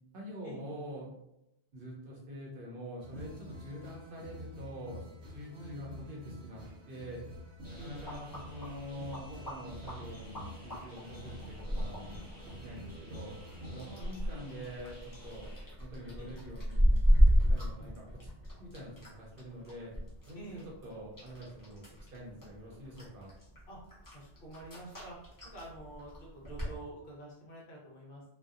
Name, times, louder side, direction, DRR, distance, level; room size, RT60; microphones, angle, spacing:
voice 1, 0.1-1.1 1.7-5.1 5.3-6.6 6.9-7.2 7.7-13.3 13.7-15.5 15.8-17.0 17.4-18.3 18.6-19.9 20.3-21.8 22.1-23.3, equal, 55° right, -3 dB, 0.8 m, -45 dB
sound 1, 3.0-13.9, equal, 85° right, 1.0 m, -48 dB
voice 2, 5.5-5.9 7.8-8.1 13.8-14.3 16.2-16.3 17.8-17.9 20.3-20.7 23.7-23.8 24.1-25.2 25.5-28.2, right 1 dB, 60° left, -3 dB, 0.9 m, -48 dB
sound 2, 7.6-26.7, equal, 20° left, 0.6 m, -33 dB
sound 3, 7.6-15.6, right 1 dB, 20° right, 1.0 m, -54 dB
2.6 x 2.2 x 2.3 m, 0.84 s
omnidirectional pair, 1.2 m